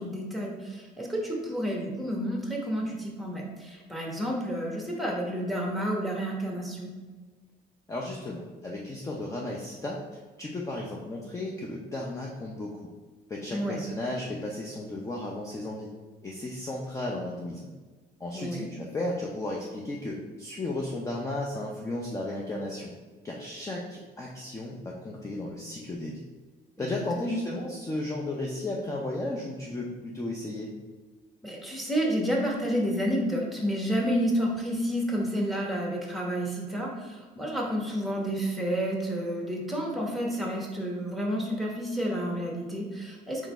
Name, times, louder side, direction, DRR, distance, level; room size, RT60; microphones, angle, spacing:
voice 1, 0.0-6.9 13.5-13.8 18.3-18.7 26.9-27.4 31.4-43.5, equal, ahead, -2 dB, 1.1 m, -30 dB
voice 2, 7.9-12.9 13.3-15.9 16.2-17.7 18.2-22.9 23.2-26.2 26.8-30.7, left 2 dB, 20° left, -2 dB, 0.6 m, -34 dB
3.8 x 3.1 x 4.3 m, 1.3 s
cardioid pair, 110°, 17 cm